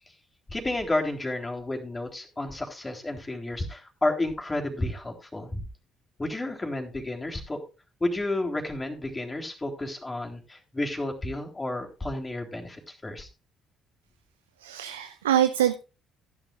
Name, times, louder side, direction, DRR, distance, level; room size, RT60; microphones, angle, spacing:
voice 1, 0.5-5.6 6.2-7.6 8.0-13.3, left 2 dB, 20° left, 2 dB, 3.7 m, -31 dB
voice 2, 14.6-15.7, right 11 dB, 80° right, 10 dB, 0.6 m, -24 dB
16.0 x 11.0 x 2.5 m, 0.30 s
figure-of-eight pair, 50°, 0 cm